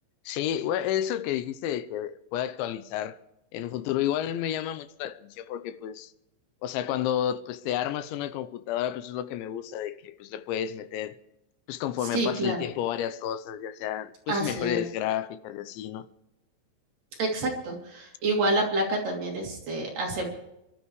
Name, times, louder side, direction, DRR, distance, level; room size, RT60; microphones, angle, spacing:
voice 1, 0.3-3.2 3.5-6.1 6.6-11.2 11.7-16.1, left 11 dB, 80° left, 2.9 m, -31 dB
voice 2, 12.1-12.6 14.3-14.8 17.2-20.4, right 2 dB, 50° right, 4.2 m, -28 dB
28.0 x 12.5 x 3.2 m
omnidirectional pair, 5.5 m